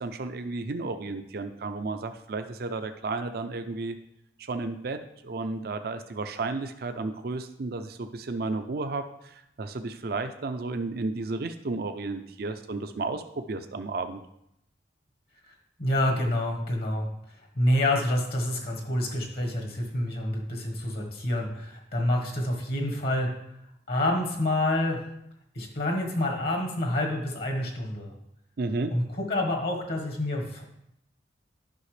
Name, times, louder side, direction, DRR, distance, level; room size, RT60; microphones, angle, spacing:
voice 1, 0.0-4.0 4.5-14.2 28.6-28.9, right 3 dB, 55° right, 8 dB, 0.5 m, -33 dB
voice 2, 15.8-17.1 17.6-23.3 23.9-25.0 25.5-28.1 28.9-30.6, left 1 dB, 55° left, 2 dB, 1.3 m, -27 dB
11.0 x 5.8 x 3.2 m, 0.79 s
head